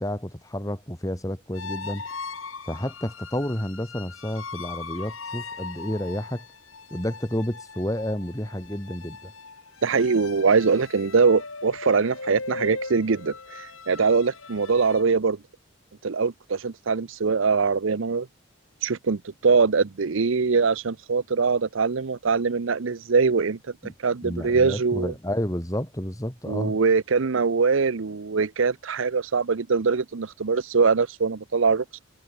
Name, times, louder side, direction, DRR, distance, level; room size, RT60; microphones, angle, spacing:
voice 1, 0.0-2.0 2.7-6.4 6.9-9.3 23.8-23.9 24.2-26.8, equal, 15° left, 3.1 m, -30 dB
sound 1, 1.5-15.0, left 4 dB, 80° left, 7.9 m, -39 dB
voice 2, 9.8-15.4 16.0-18.3 18.8-23.6 24.0-25.1 26.5-32.0, right 4 dB, 70° right, 0.7 m, -22 dB
head